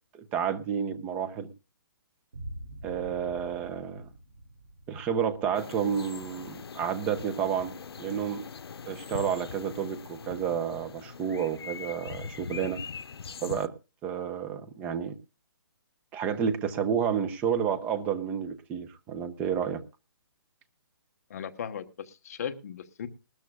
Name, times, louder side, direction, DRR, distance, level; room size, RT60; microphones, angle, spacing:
voice 1, 0.1-1.5 2.8-4.0 4.9-7.7 8.0-8.4 8.9-12.8 13.4-13.7 14.0-15.2 16.1-19.8, right 7 dB, 10° right, 10 dB, 0.7 m, -30 dB
sound 1, 2.3-9.7, right 1 dB, 65° right, 2.4 m, -47 dB
sound 2, 5.5-13.7, left 6 dB, 85° left, 0.7 m, -42 dB
voice 2, 21.3-23.1, left 8 dB, 40° left, 9 dB, 1.0 m, -37 dB
20.0 x 13.0 x 2.3 m, 0.29 s
hypercardioid pair, 165°, 13 cm